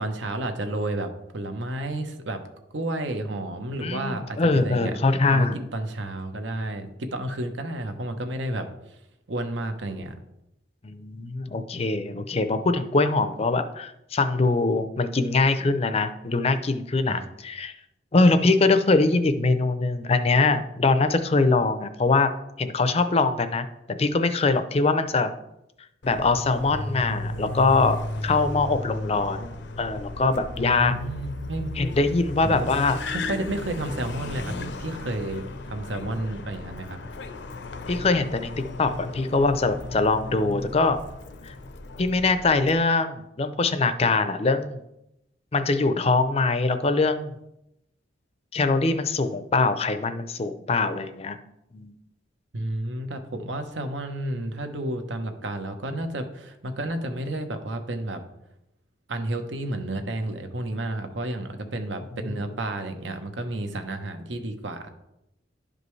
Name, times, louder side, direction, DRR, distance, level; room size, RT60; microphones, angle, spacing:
voice 1, 0.0-2.4 2.7-5.0 5.3-8.7 9.3-10.1 17.1-17.2 30.6-31.7 32.4-32.8 33.1-37.0 52.5-58.2 59.1-64.9, right 1 dB, 85° right, 6 dB, 1.0 m, -31 dB
voice 2, 3.8-5.6 10.8-17.7 18.1-22.3 22.6-25.3 26.0-29.5 29.8-31.0 31.8-33.0 37.9-38.5 38.8-41.0 41.4-41.5 42.0-44.8 45.5-47.3 48.5-51.4 51.7-51.9, left 3 dB, 35° left, 10 dB, 0.5 m, -23 dB
Car, 26.0-42.8, left 2 dB, 70° left, 0.7 m, -35 dB
11.0 x 5.2 x 3.2 m, 0.86 s
head